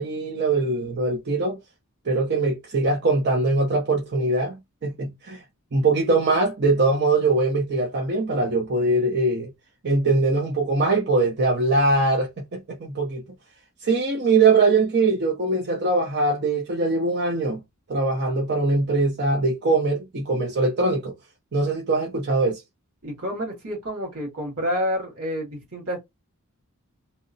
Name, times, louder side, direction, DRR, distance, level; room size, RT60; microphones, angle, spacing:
voice 1, 0.0-1.6 2.1-5.4 5.7-9.5 9.8-13.2 13.8-17.6 17.9-21.1 21.5-22.6, right 3 dB, 50° right, 0.6 m, -22 dB
voice 2, 23.0-26.1, equal, 85° right, 1.6 m, -29 dB
2.8 x 2.1 x 2.6 m
head